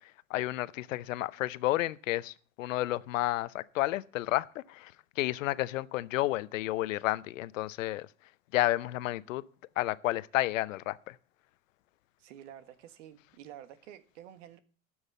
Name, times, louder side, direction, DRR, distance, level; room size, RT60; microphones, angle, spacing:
voice 1, 0.0-8.1 8.5-9.4 9.8-11.2, left 16 dB, 75° left, 0.7 m, -31 dB
voice 2, 12.2-14.6, right 11 dB, 65° right, 1.5 m, -50 dB
12.5 x 6.4 x 7.3 m
hypercardioid pair, 95°, 39 cm